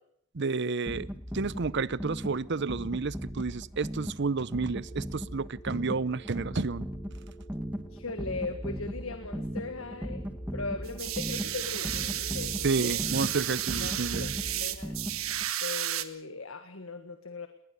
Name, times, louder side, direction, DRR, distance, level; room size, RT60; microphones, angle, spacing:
voice 1, 0.3-1.1 1.3-6.9 12.6-14.3, right 4 dB, 55° right, 20 dB, 0.7 m, -30 dB
sound 1, 0.9-15.5, equal, 5° right, 1.4 m, -38 dB
sound 2, 4.7-14.8, right 4 dB, 25° left, 2.1 m, -53 dB
voice 2, 7.9-10.2 10.5-13.0 13.5-14.3 14.6-15.1 15.6-17.5, left 3 dB, 75° left, 9 dB, 1.7 m, -39 dB
sound 3, 10.8-16.0, right 12 dB, 85° right, 1.5 m, -33 dB
21.0 x 19.5 x 6.9 m, 0.74 s
head